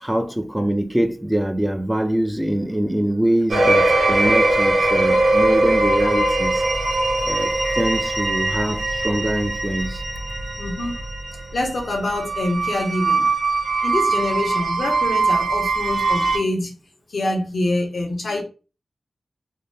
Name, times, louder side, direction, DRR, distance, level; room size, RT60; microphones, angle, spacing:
voice 1, 0.0-6.6 7.2-10.0, right 1 dB, 10° right, 0.4 m, -23 dB
sound 1, 3.5-16.4, right 2 dB, 80° right, 0.7 m, -21 dB
voice 2, 10.6-11.1 11.5-13.3 13.8-16.7 17.1-18.4, left 2 dB, 75° left, 0.9 m, -25 dB
2.6 x 2.1 x 3.2 m
cardioid pair, 55°, 0 cm